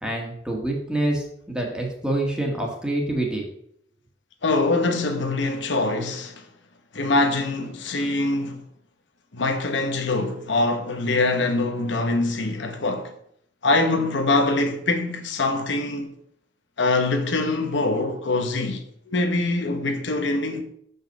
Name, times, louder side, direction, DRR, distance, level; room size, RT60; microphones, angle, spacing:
voice 1, 0.0-3.4, right 1 dB, 5° right, 1.6 m, -26 dB
voice 2, 4.4-6.5 6.9-8.6 9.3-13.1 13.6-16.1 16.8-20.6, left 2 dB, 75° left, 1.0 m, -24 dB
6.2 x 5.4 x 6.6 m
head